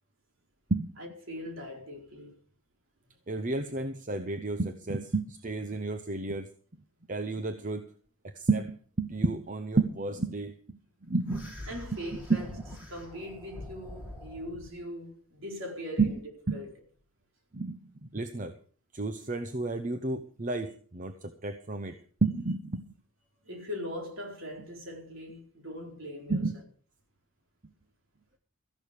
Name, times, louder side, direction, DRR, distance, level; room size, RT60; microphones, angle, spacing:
voice 1, 1.0-2.4 11.7-12.5 12.9-16.1 16.5-16.7 23.4-26.4, left 1 dB, 60° right, 4.5 m, -40 dB
voice 2, 3.3-6.5 7.1-7.9 8.2-10.8 11.1-11.5 12.3-12.4 16.0-16.1 16.5-16.6 17.5-18.6 18.9-22.9 26.3-26.6, right 3 dB, 35° right, 0.8 m, -31 dB
sound 1, 11.3-14.7, left 1 dB, 10° right, 4.3 m, -44 dB
14.5 x 11.0 x 5.2 m
head